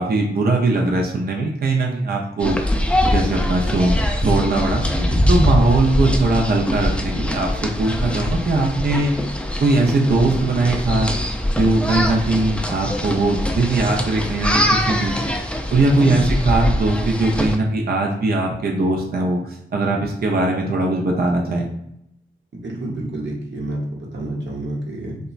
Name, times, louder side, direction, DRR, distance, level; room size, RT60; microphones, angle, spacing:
voice 1, 0.0-2.6 3.1-4.8 5.3-9.2 9.6-11.1 11.5-15.4 15.7-21.7, right 2 dB, 55° right, 0 dB, 0.5 m, -20 dB
sound 1, 2.4-17.6, left 1 dB, 5° left, 0.4 m, -22 dB
voice 2, 4.9-5.2 16.0-16.3 22.5-25.2, right 1 dB, 70° right, -2 dB, 0.9 m, -28 dB
2.9 x 2.2 x 2.4 m, 0.77 s
cardioid pair, 45°, 19 cm